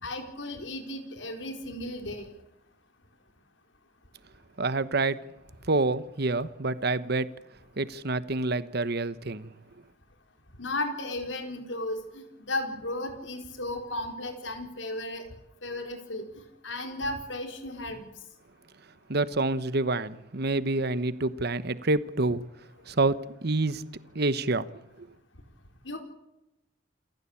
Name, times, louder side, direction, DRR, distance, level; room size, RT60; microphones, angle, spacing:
voice 1, 0.0-2.3 10.6-15.3 15.6-18.1 25.8-26.0, left 1 dB, 90° left, 4.4 m, -35 dB
voice 2, 4.6-5.2 5.7-7.3 7.8-9.5 19.1-22.4 22.9-24.7, right 2 dB, 60° right, 1.2 m, -27 dB
28.5 x 15.0 x 8.7 m
head